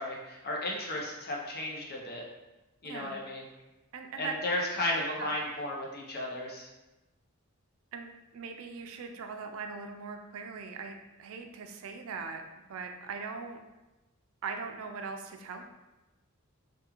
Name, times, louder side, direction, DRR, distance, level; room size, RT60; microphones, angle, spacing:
voice 1, 0.0-2.2 2.8-3.4 4.2-6.7, left 1 dB, 45° left, -2 dB, 0.7 m, -34 dB
voice 2, 2.8-3.2 3.9-4.4 5.2-5.5 7.9-12.4 12.7-13.6 14.4-15.6, right 5 dB, 70° right, 5 dB, 0.4 m, -40 dB
3.5 x 2.4 x 2.9 m, 1.0 s
head